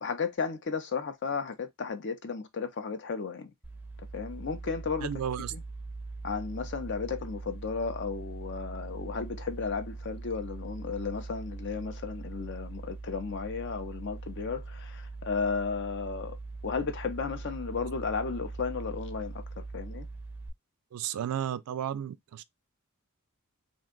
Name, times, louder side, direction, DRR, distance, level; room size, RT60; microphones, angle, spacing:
voice 1, 0.0-3.5 4.1-5.1 5.5-5.6 6.2-16.4 16.6-20.1, left 5 dB, 55° left, 0.6 m, -34 dB
sound 1, 3.6-20.5, right 3 dB, 10° right, 0.5 m, -41 dB
voice 2, 5.0-5.5 20.9-22.4, right 9 dB, 85° right, 0.3 m, -33 dB
2.6 x 2.2 x 3.7 m
head